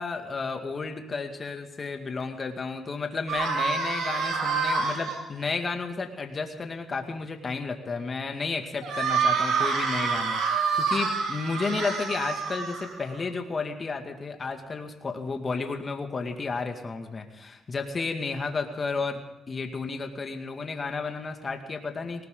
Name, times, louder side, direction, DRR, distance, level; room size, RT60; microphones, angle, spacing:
voice 1, 0.0-22.3, left 4 dB, 35° left, 4 dB, 2.4 m, -32 dB
sound 1, 3.3-5.1 8.8-13.2, right 5 dB, 80° right, 5.9 m, -27 dB
19.5 x 18.5 x 4.0 m, 0.94 s
cardioid pair, 90°, 0 cm